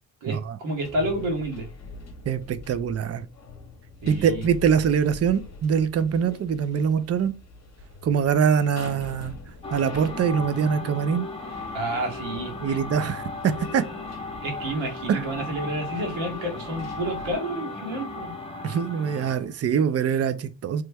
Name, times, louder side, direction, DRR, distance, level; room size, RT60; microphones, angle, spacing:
voice 1, 0.2-1.7 4.0-4.5 11.7-12.8 14.4-18.3, right 1 dB, 75° right, 1.5 m, -30 dB
sound 1, 0.8-17.3, left 2 dB, 35° left, 1.0 m, -44 dB
voice 2, 2.3-3.3 4.1-7.3 8.0-9.3 9.7-11.3 12.6-13.8 15.1-15.2 18.6-20.8, right 7 dB, 35° right, 0.4 m, -23 dB
sound 2, 9.6-19.4, left 3 dB, 10° left, 0.8 m, -36 dB
3.1 x 2.1 x 3.3 m
supercardioid pair, 70°, 47 cm